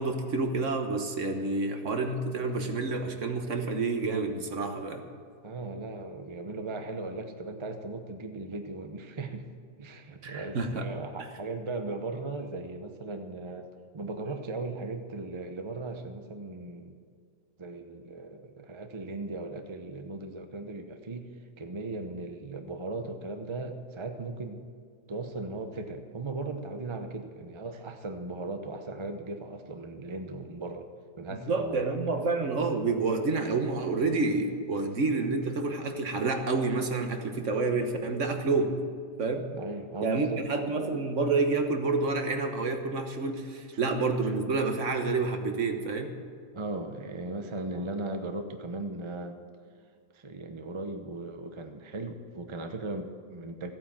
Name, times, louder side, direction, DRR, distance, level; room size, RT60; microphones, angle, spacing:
voice 1, 0.0-5.0 10.2-10.8 31.3-38.7 39.2-39.5 40.0-46.1, right 3 dB, 50° right, 5 dB, 1.4 m, -29 dB
voice 2, 5.4-9.5 9.8-13.7 13.9-17.0 17.6-21.3 21.6-24.6 25.1-30.9 31.2-31.9 39.5-40.4 46.5-49.4 50.1-53.7, right 2 dB, 30° right, 6 dB, 0.5 m, -37 dB
15.0 x 9.2 x 7.4 m, 2.1 s
omnidirectional pair, 1.8 m